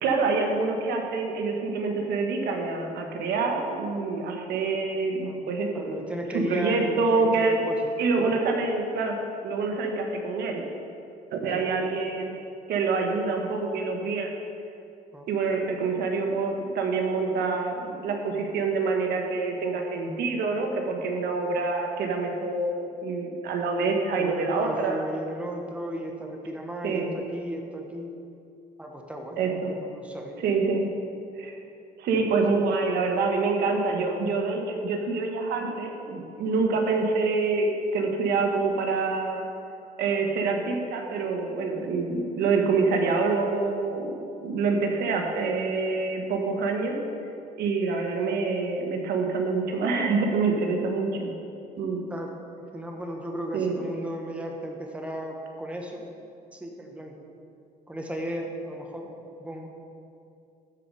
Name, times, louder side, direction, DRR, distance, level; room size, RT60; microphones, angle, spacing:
voice 1, 0.0-6.0 6.3-7.6 8.0-9.2 9.4-10.6 11.3-12.3 12.7-14.3 15.3-25.0 26.8-27.1 29.4-29.7 30.4-30.9 31.4-31.5 32.0-39.5 40.0-44.1 44.4-47.0 47.6-51.3 51.8-52.0 53.5-53.8, right 4 dB, 75° right, 2 dB, 1.4 m, -26 dB
voice 2, 5.2-8.4 11.5-12.0 15.1-15.3 15.7-15.9 24.2-28.1 28.8-30.4 30.7-30.8 32.1-32.6 52.1-56.0 56.5-57.2 57.9-59.1 59.4-59.7, equal, 5° right, 1 dB, 1.3 m, -36 dB
13.0 x 4.9 x 5.4 m, 2.6 s
cardioid pair, 110°, 17 cm